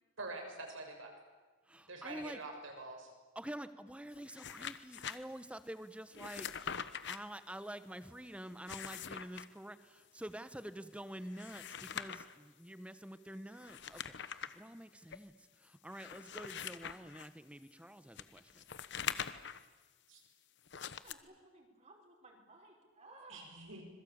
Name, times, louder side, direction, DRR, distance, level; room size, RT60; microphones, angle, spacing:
voice 1, 0.2-1.1 1.9-3.1 20.1-20.2 23.3-23.8, right 2 dB, 75° right, 2 dB, 6.8 m, -46 dB
voice 2, 1.7-2.4 3.3-6.5 7.1-18.6, right 1 dB, 5° right, 12 dB, 1.1 m, -48 dB
sound 1, 4.1-5.2 6.1-7.2 8.5-9.5 11.2-12.3 13.6-14.6 15.1-15.2 15.9-17.3 18.2-19.6 20.7-21.1, left 8 dB, 60° left, 1.1 m, -43 dB
voice 3, 21.0-23.5, right 2 dB, 35° right, 0 dB, 5.3 m, -58 dB
26.0 x 22.0 x 8.8 m, 1.3 s
head